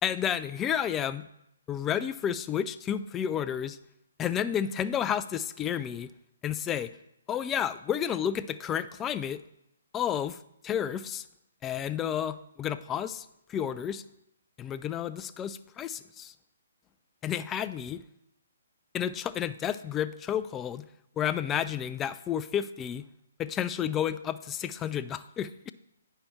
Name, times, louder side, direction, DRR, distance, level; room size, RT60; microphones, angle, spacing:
voice 1, 0.0-1.3 1.7-3.8 4.2-6.1 6.4-6.9 7.3-9.4 9.9-10.4 10.6-11.3 11.6-14.0 14.6-16.3 17.2-18.0 18.9-20.9 21.2-23.1 23.4-25.7, left 9 dB, 15° left, 13 dB, 0.3 m, -31 dB
8.9 x 5.7 x 4.3 m, 0.80 s
hypercardioid pair, 140°, 0 cm